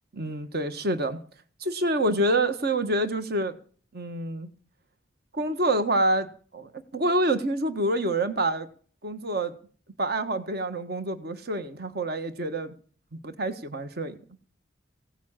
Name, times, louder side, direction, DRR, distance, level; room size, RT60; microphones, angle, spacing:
voice 1, 0.1-1.2 1.6-3.6 3.9-4.5 5.3-6.3 6.5-8.7 9.0-9.5 10.0-12.7 13.2-14.2, right 1 dB, 55° right, 10 dB, 1.4 m, -27 dB
16.5 x 7.2 x 8.9 m, 0.42 s
head